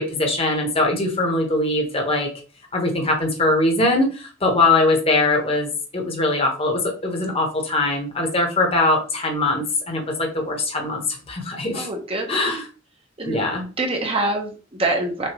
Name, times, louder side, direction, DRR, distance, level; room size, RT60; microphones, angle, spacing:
voice 1, 0.0-2.3 2.7-11.9 12.3-12.6 13.2-13.6, left 2 dB, 30° left, 2 dB, 1.1 m, -21 dB
voice 2, 11.7-12.5 13.2-13.4 13.8-15.3, right 2 dB, 30° right, 2 dB, 0.9 m, -25 dB
6.3 x 2.6 x 3.0 m, 0.35 s
head